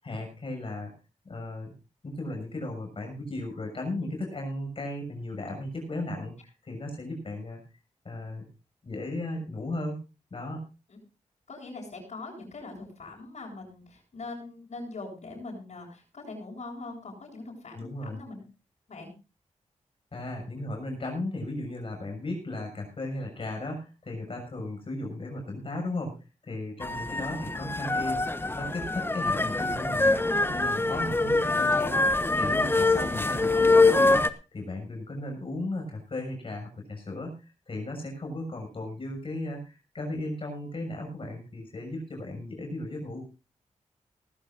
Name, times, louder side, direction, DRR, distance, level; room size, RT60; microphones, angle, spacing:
voice 1, 0.0-0.9 1.2-1.7 2.0-7.6 8.0-8.5 8.8-10.0 10.3-10.6 17.7-18.2 20.1-28.2 28.5-34.3 34.5-43.2, left 2 dB, 45° left, 2 dB, 6.7 m, -36 dB
voice 2, 11.5-18.4 18.9-19.1, left 3 dB, 65° left, -5 dB, 7.3 m, -42 dB
sound 1, 26.8-34.3, left 2 dB, 20° left, 1.1 m, -24 dB
19.0 x 15.5 x 2.6 m, 0.29 s
wide cardioid pair, 105°, 12 cm